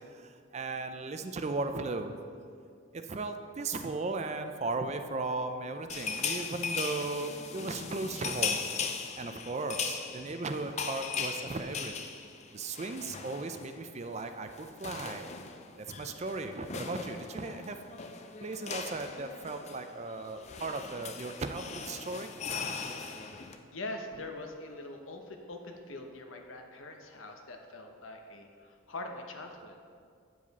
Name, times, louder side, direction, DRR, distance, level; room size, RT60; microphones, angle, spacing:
voice 1, 0.1-2.1 2.9-8.6 9.2-11.9 12.5-15.3 16.0-17.8 18.4-22.3, right 3 dB, 30° right, 7 dB, 0.4 m, -36 dB
sound 1, 5.9-13.8 14.0-14.2 14.5-23.6, left 5 dB, 35° left, 0.5 m, -38 dB
voice 2, 23.3-29.8, left 2 dB, 75° left, 4 dB, 0.9 m, -43 dB
9.2 x 7.4 x 4.1 m, 2.2 s
head